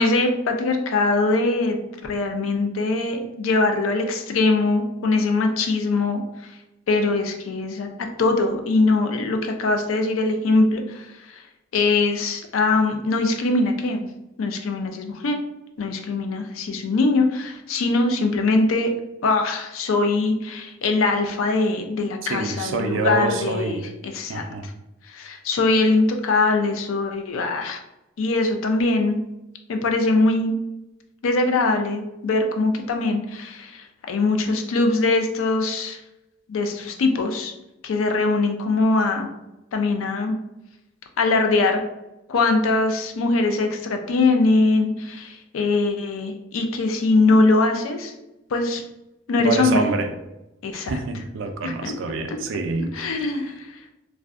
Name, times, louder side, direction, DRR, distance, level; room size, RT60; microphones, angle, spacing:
voice 1, 0.0-6.5 6.9-11.4 11.7-14.1 14.4-15.4 15.8-18.9 19.2-24.5 25.1-27.8 28.2-29.2 29.7-30.6 31.2-36.0 36.5-37.5 37.8-39.3 39.7-40.4 41.2-41.8 42.3-48.1 48.5-48.8 49.3-49.8 50.6-50.9 51.6-51.9 52.3-52.4 52.9-53.8, left 3 dB, 90° left, 5 dB, 0.4 m, -22 dB
voice 2, 22.2-23.9 24.3-24.7 49.4-50.2 50.7-53.4, right 3 dB, 65° right, 6 dB, 0.3 m, -27 dB
2.5 x 2.0 x 2.4 m, 0.92 s
head